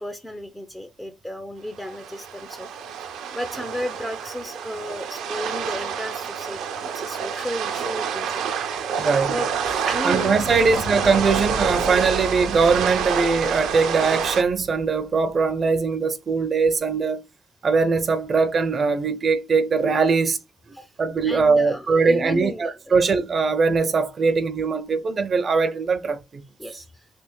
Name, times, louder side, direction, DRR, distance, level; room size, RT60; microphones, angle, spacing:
voice 1, 0.0-2.7 3.0-8.4 9.3-9.5 9.8-10.3 20.7-20.9 21.2-23.0 26.6-27.1, equal, 10° left, 0.5 m, -34 dB
sound 1, 1.8-14.4, right 7 dB, 85° right, 0.6 m, -28 dB
voice 2, 9.0-9.4 10.0-17.2 17.6-20.4 21.0-26.4, right 4 dB, 45° right, 0.5 m, -21 dB
Fire / Explosion, 9.6-15.5, left 1 dB, 85° left, 0.9 m, -36 dB
3.4 x 2.9 x 3.0 m
cardioid pair, 90°, 0 cm